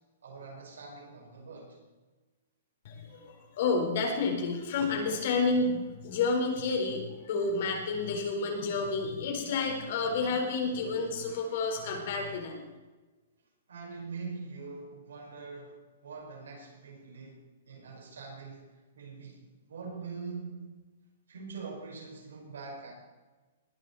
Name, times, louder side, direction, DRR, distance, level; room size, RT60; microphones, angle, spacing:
voice 1, 0.2-1.8 13.7-18.7 18.9-20.7 21.3-22.9, right 4 dB, 90° right, 6.0 m, -43 dB
voice 2, 2.8-12.6, left 4 dB, 55° left, 4.5 m, -30 dB
20.0 x 11.0 x 4.3 m
hypercardioid pair, 145°, 0 cm